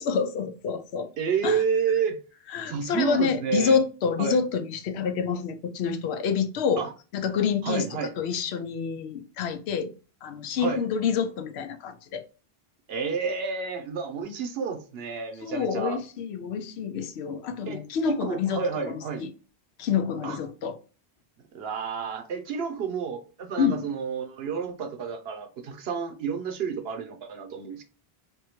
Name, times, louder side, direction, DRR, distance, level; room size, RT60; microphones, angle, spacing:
voice 1, 0.0-1.1 1.4-1.6 2.5-6.8 7.1-9.9 10.2-12.2 15.4-19.3 19.8-20.8 23.6-23.9, left 6 dB, 85° left, 0.8 m, -27 dB
voice 2, 1.2-2.2 2.7-3.8 4.2-4.4 6.8-6.9 7.6-8.1 10.6-10.8 12.9-16.0 17.7-19.3 20.2-20.4 21.5-27.8, right 6 dB, 75° right, 0.9 m, -30 dB
3.5 x 2.2 x 2.9 m
omnidirectional pair, 1.1 m